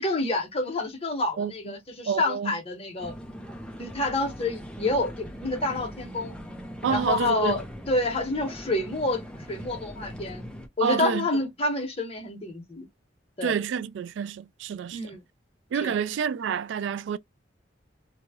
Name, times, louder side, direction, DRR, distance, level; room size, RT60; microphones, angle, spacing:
voice 1, 0.0-3.1 3.8-6.3 6.9-10.4 10.8-12.9 13.4-13.5 14.9-15.2 15.8-16.0, left 2 dB, 35° left, 1.2 m, -28 dB
voice 2, 1.4-1.8 2.1-2.6 6.8-7.6 10.8-11.3 13.4-15.1 15.7-17.2, right 7 dB, 75° right, 0.3 m, -28 dB
sound 1, 3.0-10.7, equal, 5° left, 0.7 m, -40 dB
3.0 x 2.3 x 2.9 m
head